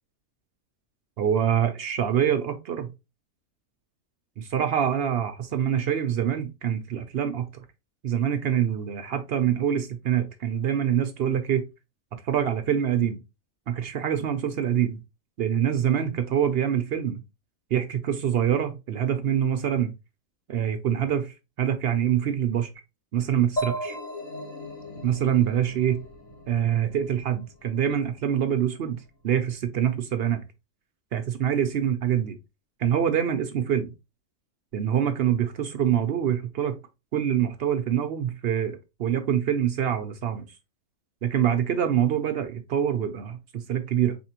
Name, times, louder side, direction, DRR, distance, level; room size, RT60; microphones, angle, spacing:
voice 1, 1.2-2.9 4.4-7.5 8.0-11.7 12.1-13.2 13.7-15.0 15.4-17.2 17.7-19.9 20.5-22.7 23.1-24.0 25.0-26.0 26.5-30.4 31.1-32.4 32.8-33.9 34.7-36.8 37.1-40.4 41.2-44.2, right 9 dB, 65° right, 0.6 m, -25 dB
sound 1, 23.6-27.2, equal, 65° left, 2.2 m, -35 dB
4.1 x 3.5 x 2.9 m
omnidirectional pair, 1.5 m